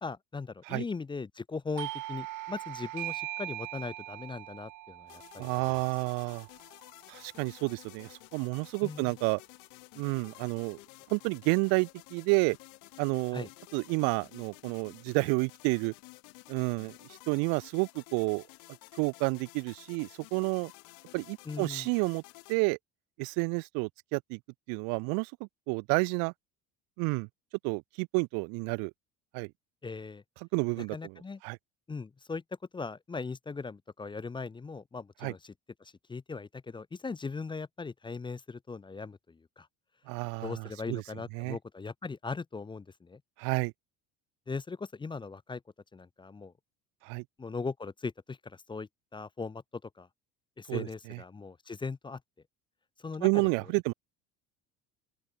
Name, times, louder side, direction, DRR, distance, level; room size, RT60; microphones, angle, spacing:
voice 1, 0.0-5.8 8.8-9.2 13.3-13.5 21.5-21.9 29.8-30.2 30.8-31.4 31.9-32.4 32.7-35.5 35.8-39.7 40.4-43.2 44.5-45.6 45.9-46.5 47.4-50.1 50.6-52.2 53.0-53.3 53.6-53.7, left 4 dB, 15° left, 0.6 m, -39 dB
Doorbell, 1.8-7.1, right 17 dB, 60° right, 1.8 m, -41 dB
sound 1, 5.1-22.5, left 37 dB, 90° left, 1.7 m, -53 dB
voice 2, 5.4-6.5 7.1-9.4 10.0-10.8 11.1-12.6 13.0-15.9 16.5-17.0 17.3-18.4 18.9-20.7 21.1-22.2 22.5-22.8 23.2-24.4 24.7-25.3 25.7-26.3 27.0-27.3 27.6-28.9 29.3-29.5 30.5-31.1 31.4-31.6 35.2-35.3 40.1-41.0 41.4-41.6 43.4-43.7 47.0-47.2 50.7-51.2 53.2-53.9, right 36 dB, 85° right, 0.6 m, -30 dB
open air
cardioid pair, 125°, 34 cm